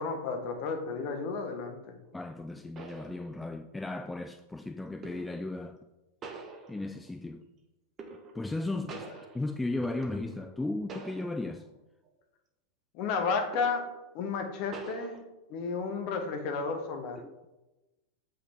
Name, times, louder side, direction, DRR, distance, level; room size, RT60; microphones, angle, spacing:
voice 1, 0.0-1.9 12.9-13.8 14.1-15.2 15.5-17.2, left 4 dB, 45° left, 1.1 m, -32 dB
voice 2, 2.1-5.8 6.7-7.4 8.3-9.1 9.3-11.7 17.2-17.5, left 2 dB, 10° left, 0.3 m, -35 dB
sound 1, 2.8-3.7 5.0-5.5 6.2-7.1 8.0-8.6 8.9-10.6 10.9-11.7 12.1-12.2 13.5-14.0 14.7-15.2, right 4 dB, 25° right, 1.0 m, -46 dB
7.5 x 5.7 x 3.4 m
figure-of-eight pair, 90°, 0 cm